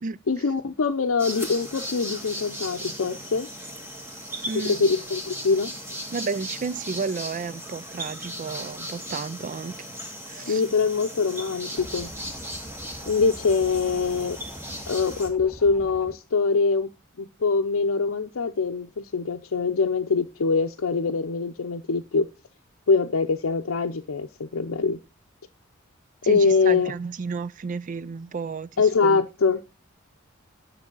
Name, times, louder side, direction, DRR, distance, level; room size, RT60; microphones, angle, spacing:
voice 1, 0.3-3.5 4.6-5.7 10.5-12.1 13.1-14.4 14.9-16.9 17.2-22.3 22.9-25.0 26.3-26.9 28.8-29.6, left 4 dB, 80° left, 0.6 m, -23 dB
sound 1, 1.2-15.3, equal, 10° right, 1.6 m, -37 dB
voice 2, 4.5-4.8 6.1-9.9 10.3-10.6 26.2-29.3, right 4 dB, 40° right, 0.4 m, -32 dB
sound 2, 11.8-16.2, left 1 dB, 5° left, 0.6 m, -44 dB
9.9 x 6.9 x 3.8 m
head